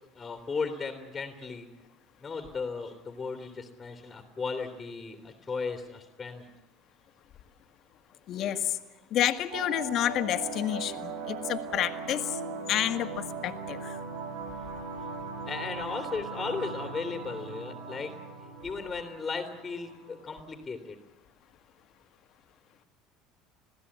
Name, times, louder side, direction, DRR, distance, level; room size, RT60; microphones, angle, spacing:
voice 1, 0.1-1.7 2.2-6.4 15.5-18.1 18.6-21.0, left 4 dB, 20° left, 5 dB, 3.0 m, -36 dB
voice 2, 8.3-8.8 9.1-12.3 12.7-14.0, left 11 dB, 55° left, 9 dB, 1.8 m, -29 dB
sound 1, 9.5-20.5, right 4 dB, 90° right, 2.9 m, -39 dB
21.5 x 16.0 x 9.9 m, 1.0 s
supercardioid pair, 95°, 0 cm